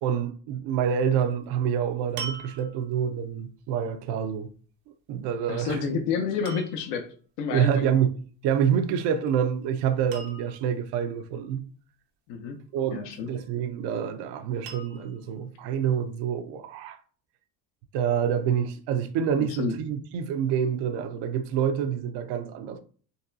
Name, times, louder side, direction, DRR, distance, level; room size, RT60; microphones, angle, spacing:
voice 1, 0.0-4.5 5.1-5.8 7.5-11.6 12.7-17.0 17.9-22.8, right 8 dB, 70° right, 0.5 m, -27 dB
sound 1, 1.2-1.4 2.2-3.1 5.5-5.8 6.4-7.0 8.9-9.3 9.6-9.7 10.1-10.8 13.1-13.7 14.7-15.3 16.0-16.1, right 5 dB, 90° right, 0.9 m, -41 dB
voice 2, 5.5-7.1 7.4-7.9 12.3-12.6 12.9-13.3 19.4-19.8, left 6 dB, 75° left, 0.7 m, -29 dB
4.0 x 2.3 x 2.6 m
supercardioid pair, 90°, 43 cm